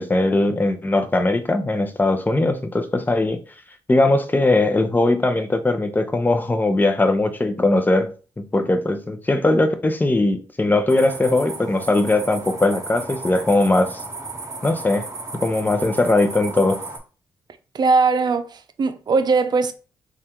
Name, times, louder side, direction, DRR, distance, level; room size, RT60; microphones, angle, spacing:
voice 1, 0.0-3.4 3.9-14.0 14.6-15.1 15.4-16.8, left 2 dB, 20° left, 0.8 m, -20 dB
sound 1, 10.9-17.0, right 2 dB, 35° right, 1.1 m, -34 dB
voice 2, 17.7-19.7, right 4 dB, 50° right, 0.6 m, -19 dB
3.3 x 2.4 x 4.4 m
supercardioid pair, 50°, 9 cm